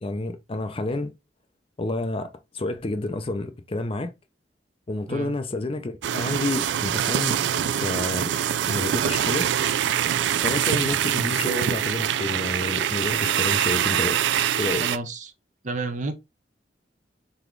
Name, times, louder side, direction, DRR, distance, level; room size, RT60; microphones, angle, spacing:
voice 1, 0.0-1.1 1.8-2.3 2.5-4.1 4.9-8.3 8.6-9.5 10.4-14.2 14.6-14.9, left 2 dB, 30° left, 0.6 m, -29 dB
sound 1, 6.0-15.0, right 10 dB, 85° right, 0.3 m, -24 dB
voice 2, 14.8-15.3 15.6-16.1, right 3 dB, 45° right, 0.7 m, -30 dB
4.0 x 3.5 x 3.2 m
head